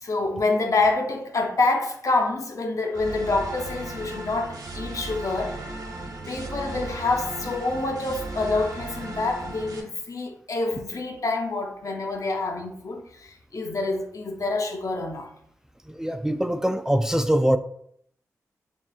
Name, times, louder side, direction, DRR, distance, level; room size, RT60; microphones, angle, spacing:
voice 1, 0.0-5.6 6.3-15.3, left 3 dB, 55° left, 0.8 m, -27 dB
sound 1, 2.9-9.8, right 2 dB, 65° right, 1.2 m, -36 dB
voice 2, 15.9-17.6, right 1 dB, 10° right, 0.4 m, -23 dB
7.0 x 2.9 x 2.4 m
cardioid pair, 45°, 7 cm